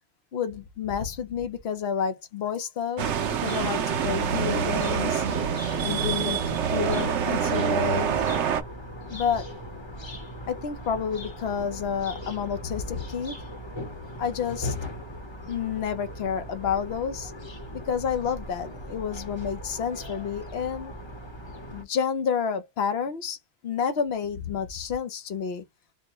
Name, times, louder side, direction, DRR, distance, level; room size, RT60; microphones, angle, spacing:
voice 1, 0.3-5.2 5.8-8.1 9.1-9.5 10.5-13.4 14.2-14.7 15.5-17.3 17.9-20.9 21.7-23.4 23.6-25.6, left 7 dB, 65° left, 1.0 m, -30 dB
sound 1, 3.0-21.8, left 1 dB, 25° left, 0.9 m, -39 dB
sound 2, 3.0-8.6, right 8 dB, 90° right, 1.0 m, -26 dB
4.3 x 2.2 x 2.9 m
omnidirectional pair, 1.2 m